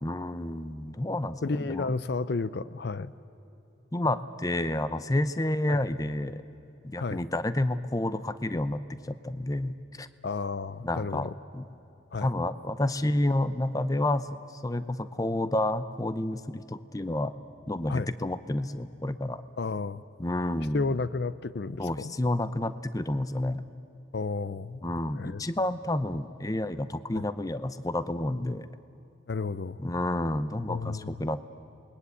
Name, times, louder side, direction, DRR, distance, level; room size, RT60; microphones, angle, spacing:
voice 1, 0.0-1.9 3.9-6.4 6.8-10.1 10.8-11.7 12.2-17.3 17.7-19.4 20.2-21.0 21.8-23.6 24.8-28.7 29.8-31.4, left 1 dB, 20° left, 13 dB, 0.7 m, -30 dB
voice 2, 1.4-3.1 5.7-5.8 7.0-7.2 10.2-11.3 12.1-12.3 17.9-18.1 19.6-20.0 20.7-22.1 24.1-24.8 25.1-25.4 27.1-27.2 29.3-29.8 30.7-31.2, left 4 dB, 60° left, 16 dB, 0.5 m, -32 dB
28.0 x 21.0 x 8.4 m, 2.9 s
head